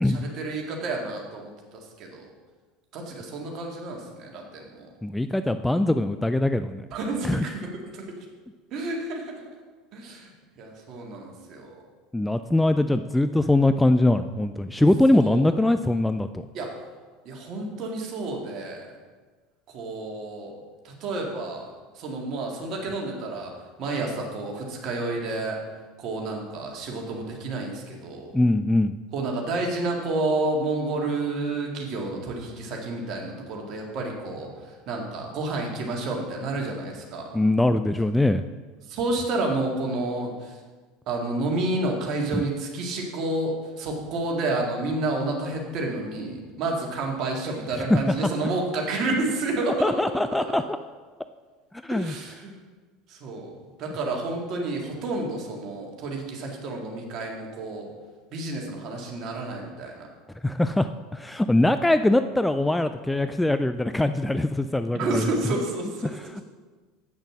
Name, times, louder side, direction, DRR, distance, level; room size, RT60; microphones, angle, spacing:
voice 1, 0.0-2.3 2.9-4.9 6.9-8.1 8.7-9.4 9.9-10.3 10.6-11.8 15.1-15.5 16.5-16.7 17.3-18.9 19.7-20.5 20.8-23.5 23.8-25.6 26.0-28.3 29.1-37.3 38.9-40.6 41.1-50.6 51.9-52.6 53.1-53.5 53.8-57.9 58.3-60.0 64.9-66.4, right 2 dB, 45° right, 0 dB, 2.0 m, -30 dB
voice 2, 5.0-6.8 7.2-7.4 12.1-16.4 28.3-29.0 37.3-38.4 42.3-42.5 47.9-48.1 49.8-50.6 51.8-52.1 60.4-65.3, left 1 dB, 5° left, 10 dB, 0.3 m, -22 dB
8.2 x 6.4 x 6.1 m, 1.4 s
figure-of-eight pair, 70°, 0 cm